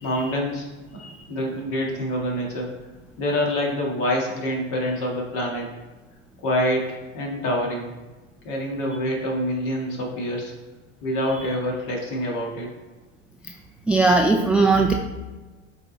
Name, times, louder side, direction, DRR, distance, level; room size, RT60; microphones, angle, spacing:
voice 1, 0.0-2.7 3.2-5.7 6.4-7.9 8.4-10.5 11.0-12.7, equal, 55° left, -1 dB, 2.0 m, -26 dB
voice 2, 13.9-14.9, right 3 dB, 5° right, 2 dB, 0.4 m, -18 dB
8.1 x 3.6 x 4.0 m, 1.2 s
hypercardioid pair, 85°, 39 cm